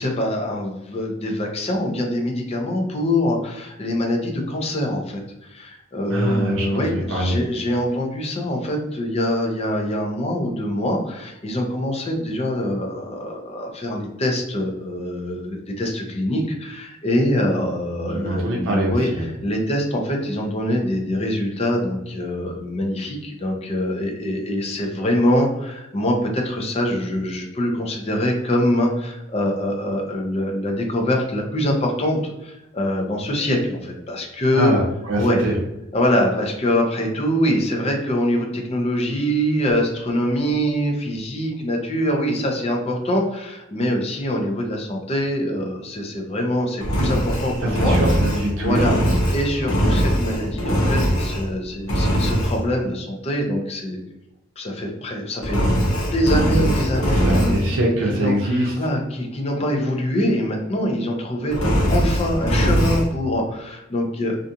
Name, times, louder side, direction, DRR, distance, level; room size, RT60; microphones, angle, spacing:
voice 1, 0.0-34.7 35.2-35.4 35.9-48.0 48.6-48.9 49.3-54.0 54.6-55.7 56.1-57.6 58.1-64.4, left 1 dB, 30° left, 1 dB, 0.5 m, -24 dB
voice 2, 6.1-7.4 18.1-19.3 34.5-35.5 47.6-49.1 56.5-56.7 57.1-58.7, right 1 dB, 80° right, -2 dB, 0.5 m, -23 dB
Engine, 46.8-51.5 51.9-52.6 55.4-57.7 61.5-63.1, equal, 85° left, 0.7 m, -21 dB
2.5 x 2.3 x 2.7 m, 0.92 s
head